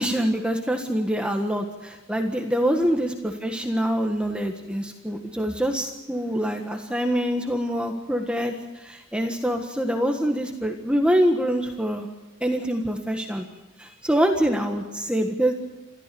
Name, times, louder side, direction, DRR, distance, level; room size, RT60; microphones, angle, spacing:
voice 1, 0.0-12.1 12.4-13.5 13.8-15.5, equal, 5° right, 3 dB, 1.5 m, -25 dB
28.5 x 14.0 x 7.0 m, 1.1 s
head